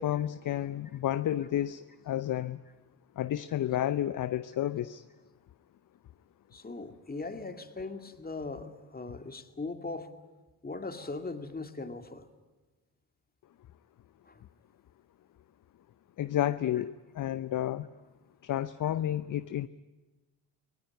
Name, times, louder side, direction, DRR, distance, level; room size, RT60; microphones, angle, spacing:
voice 1, 0.0-1.8 2.1-2.6 3.2-5.0 16.2-17.9 18.4-19.7, left 12 dB, 45° left, 14 dB, 0.7 m, -31 dB
voice 2, 6.5-10.1 10.6-12.3 14.3-14.4, left 3 dB, 20° left, 7 dB, 2.3 m, -39 dB
23.0 x 18.5 x 9.7 m, 1.2 s
supercardioid pair, 65°, 46 cm